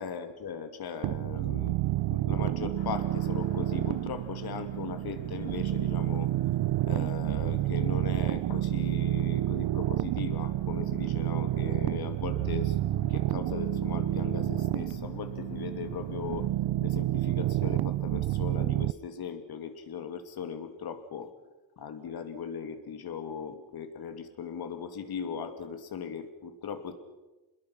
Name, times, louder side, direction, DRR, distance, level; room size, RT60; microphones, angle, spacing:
voice 1, 0.0-1.8 2.1-6.3 6.8-12.8 13.1-16.5 16.8-21.3 21.8-26.9, left 6 dB, 55° left, 8 dB, 2.6 m, -38 dB
sound 1, 1.0-18.9, right 14 dB, 60° right, 0.7 m, -29 dB
sound 2, 2.7-16.5, left 7 dB, 85° left, 6.2 m, -50 dB
26.5 x 21.0 x 5.9 m, 1.1 s
cardioid pair, 110°, 45 cm